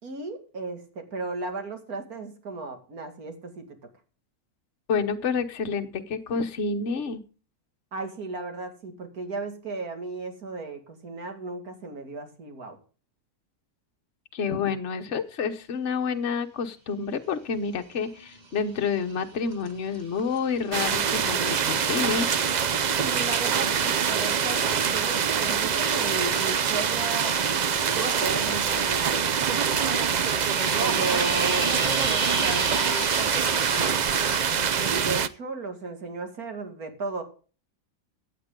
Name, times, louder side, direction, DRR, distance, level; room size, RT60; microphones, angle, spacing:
voice 1, 0.0-3.9 7.9-12.8 23.0-27.3 27.9-30.2 30.8-34.1 34.7-37.2, right 3 dB, 90° right, 6 dB, 2.7 m, -35 dB
voice 2, 4.9-7.2 14.3-22.3, left 5 dB, 55° left, 6 dB, 1.4 m, -29 dB
sound 1, 18.1-18.6 18.9-34.4, right 3 dB, 30° right, 1.4 m, -35 dB
sound 2, 20.7-35.3, right 7 dB, 50° right, 0.5 m, -25 dB
15.5 x 9.1 x 3.8 m, 0.37 s
omnidirectional pair, 1.5 m